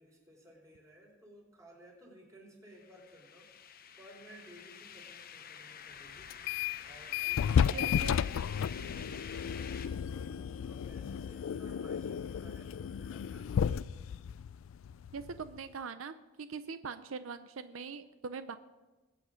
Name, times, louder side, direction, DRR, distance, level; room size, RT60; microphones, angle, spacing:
voice 1, 0.0-3.5 4.0-6.3 6.9-8.4 8.7-13.7, equal, 15° right, -1 dB, 3.9 m, -57 dB
sound 1, 2.8-9.9, left 8 dB, 45° left, 0.8 m, -48 dB
sound 2, 6.3-6.8 7.1-15.6, left 8 dB, 75° left, 0.3 m, -33 dB
voice 2, 7.7-8.2 8.8-9.1 15.1-18.6, right 5 dB, 85° right, 12 dB, 0.6 m, -42 dB
21.0 x 8.6 x 5.1 m, 1.2 s
head